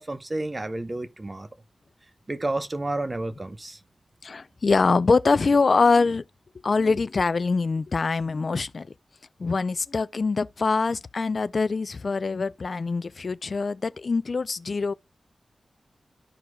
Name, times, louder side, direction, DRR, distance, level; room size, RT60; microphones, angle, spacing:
voice 1, 0.0-1.5 2.3-3.8, right 2 dB, 30° right, 0.7 m, -30 dB
voice 2, 4.2-6.2 6.6-8.9 9.4-14.9, left 4 dB, 55° left, 0.3 m, -24 dB
13.5 x 4.6 x 2.2 m
wide cardioid pair, 105°, 0 cm